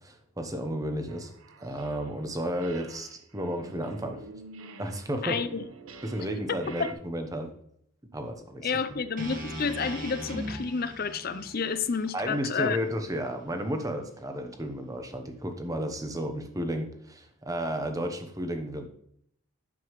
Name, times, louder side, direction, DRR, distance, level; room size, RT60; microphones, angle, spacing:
voice 1, 0.0-1.3 1.6-4.2 4.8-5.4 6.0-7.5 8.1-9.0 12.1-18.9, equal, 15° right, 0.8 m, -33 dB
sound 1, 1.1-2.3 2.5-6.9, right 3 dB, 70° right, 0.8 m, -48 dB
voice 2, 5.2-5.6 6.8-6.9 8.6-12.8, left 5 dB, 40° left, 0.5 m, -30 dB
sound 2, 9.2-13.3, equal, 40° right, 1.5 m, -40 dB
9.6 x 7.0 x 3.1 m
head